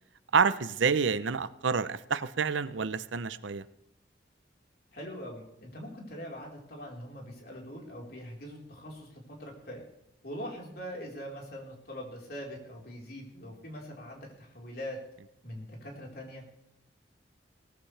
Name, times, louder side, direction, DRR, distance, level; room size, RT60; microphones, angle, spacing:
voice 1, 0.3-3.6, right 5 dB, 90° right, 15 dB, 0.7 m, -28 dB
voice 2, 4.9-9.8 10.2-15.0 15.4-16.4, equal, 55° left, -1 dB, 4.2 m, -42 dB
18.5 x 14.5 x 3.4 m, 0.82 s
head